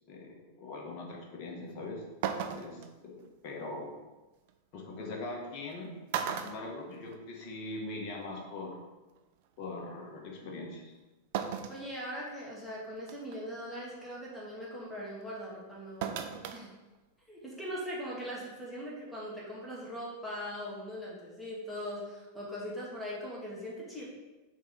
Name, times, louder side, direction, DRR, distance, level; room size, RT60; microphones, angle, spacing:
voice 1, 0.1-2.0 2.5-3.9 4.7-6.0 6.3-8.8 9.6-10.9, left 2 dB, 40° left, 0 dB, 1.8 m, -41 dB
sound 1, 1.7-1.8 2.2-2.9 4.5-4.6 5.6-5.7 6.1-7.5 7.8-7.9 9.2-9.3 11.3-11.8 12.4-12.5 13.1-13.4 16.0-16.6 16.9-17.0, right 8 dB, 50° right, 0.6 m, -35 dB
voice 2, 11.7-16.2 16.5-16.7 17.3-24.1, equal, 5° left, -6 dB, 2.3 m, -40 dB
5.9 x 4.5 x 5.4 m, 1.1 s
figure-of-eight pair, 90°, 0 cm